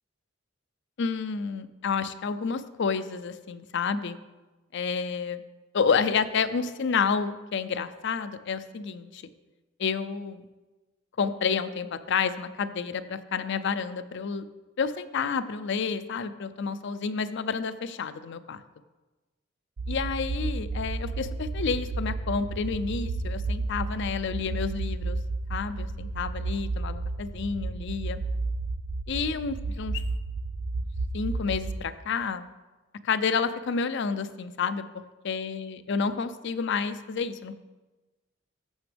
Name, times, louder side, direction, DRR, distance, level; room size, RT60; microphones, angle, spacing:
voice 1, 1.0-4.2 4.7-5.4 5.7-9.2 9.8-10.5 11.2-14.4 14.8-18.6 19.9-25.2 25.5-28.2 29.1-30.0 31.1-32.5 33.0-34.8 35.2-37.5, left 5 dB, 65° left, 12 dB, 0.5 m, -29 dB
sound 1, 19.8-31.8, right 3 dB, 85° right, 0.6 m, -32 dB
14.0 x 6.0 x 3.4 m, 1.2 s
head